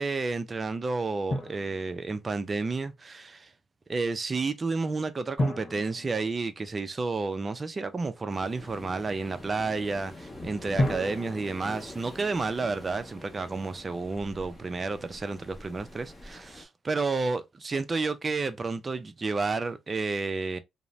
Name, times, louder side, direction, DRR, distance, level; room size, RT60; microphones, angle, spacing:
voice 1, 0.0-3.5 3.9-20.6, right 3 dB, 30° right, 0.4 m, -31 dB
Drum, 1.3-2.4 5.4-7.2 10.8-12.8, left 1 dB, 45° left, 1.0 m, -33 dB
Waves surf, 8.3-16.6, left 1 dB, 15° left, 0.8 m, -45 dB
2.5 x 2.0 x 3.0 m
cardioid pair, 90°, 0 cm